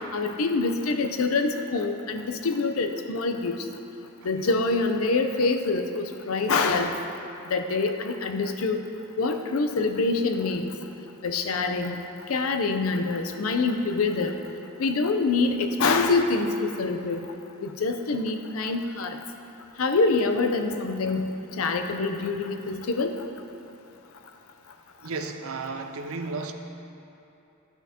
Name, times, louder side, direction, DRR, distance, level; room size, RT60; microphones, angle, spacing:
voice 1, 0.1-3.6 4.2-7.0 7.5-8.8 9.2-10.7 11.2-12.0 12.3-14.4 14.8-17.2 17.6-19.2 19.8-21.3 21.6-23.1, left 3 dB, 85° left, 6 dB, 0.6 m, -25 dB
voice 2, 25.0-26.5, right 3 dB, 90° right, 6 dB, 0.6 m, -33 dB
12.5 x 5.8 x 2.8 m, 2.9 s
head